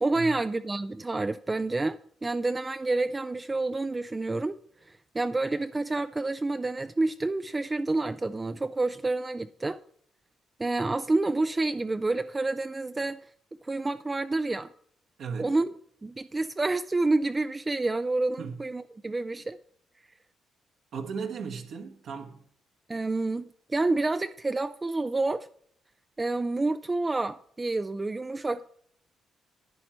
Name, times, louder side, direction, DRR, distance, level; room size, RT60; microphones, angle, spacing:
voice 1, 0.0-4.6 4.9-9.8 10.6-13.2 13.6-14.7 15.4-15.7 16.0-19.6 22.9-25.5 26.2-28.7, right 2 dB, 20° right, 0.4 m, -28 dB
voice 2, 15.2-15.6 18.4-18.6 20.9-22.4, right 5 dB, 70° right, 1.3 m, -36 dB
11.0 x 8.9 x 4.3 m
cardioid pair, 90°, 0 cm